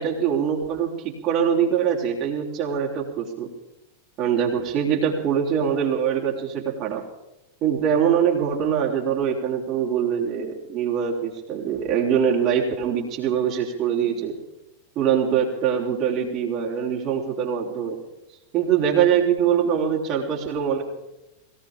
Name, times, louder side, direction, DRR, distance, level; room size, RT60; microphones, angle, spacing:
voice 1, 0.0-3.5 4.2-7.0 7.6-14.3 15.0-18.0 18.5-20.8, right 8 dB, 35° right, -2 dB, 3.7 m, -23 dB
21.0 x 18.5 x 3.6 m, 0.94 s
figure-of-eight pair, 90°, 0 cm